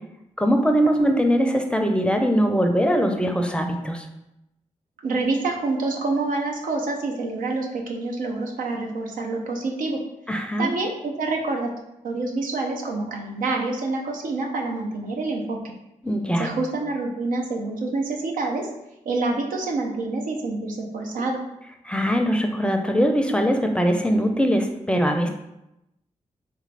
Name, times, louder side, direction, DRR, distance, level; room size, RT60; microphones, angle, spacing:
voice 1, 0.4-4.1 10.3-10.7 16.0-16.5 21.9-25.3, equal, 5° left, 4 dB, 0.5 m, -21 dB
voice 2, 5.0-10.0 10.6-11.7 12.0-15.7 16.4-18.7 19.1-21.4, right 3 dB, 85° right, 1 dB, 0.6 m, -27 dB
3.4 x 2.5 x 3.2 m, 0.88 s
supercardioid pair, 45°, 14 cm